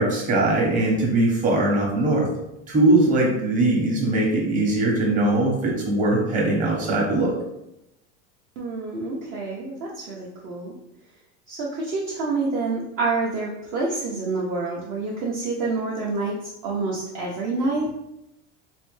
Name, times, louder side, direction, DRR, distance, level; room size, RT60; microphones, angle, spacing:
voice 1, 0.0-2.3 2.7-7.3, right 2 dB, 25° right, -3 dB, 1.0 m, -21 dB
voice 2, 8.6-10.7 11.5-17.9, right 3 dB, 40° right, -5 dB, 0.7 m, -27 dB
4.1 x 2.1 x 3.1 m, 0.86 s
supercardioid pair, 145°, 31 cm